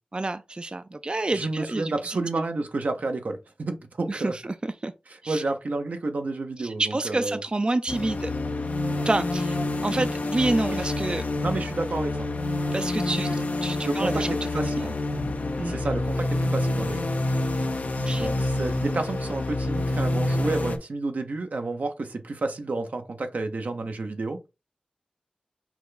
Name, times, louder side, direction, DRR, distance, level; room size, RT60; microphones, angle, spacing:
voice 1, 0.1-2.2 4.1-4.9 5.2-5.4 6.6-8.3 9.0-9.6 9.8-11.2 12.7-14.9 15.6-15.8 18.1-18.3, right 2 dB, 40° right, 0.4 m, -28 dB
voice 2, 1.3-4.3 5.3-7.4 10.7-10.8 11.4-12.3 13.2-13.4 13.8-14.2 14.5-14.9 15.6-17.1 18.1-24.4, right 3 dB, 85° right, 0.9 m, -30 dB
sound 1, 7.9-20.8, left 2 dB, 80° left, 0.7 m, -27 dB
6.0 x 2.3 x 3.9 m
wide cardioid pair, 50°, 3 cm